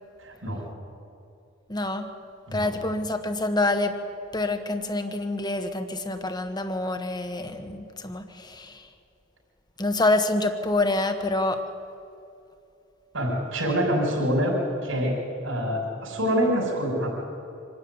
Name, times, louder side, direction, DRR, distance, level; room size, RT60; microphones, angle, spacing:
voice 1, 0.2-0.6 2.5-2.7 13.1-14.5 14.8-15.1 15.4-17.1, equal, 80° right, -2 dB, 6.3 m, -25 dB
voice 2, 1.7-2.1 2.5-4.0 4.3-8.9 9.8-11.6, left 2 dB, 20° left, 7 dB, 1.4 m, -26 dB
25.0 x 12.5 x 9.7 m, 2.7 s
head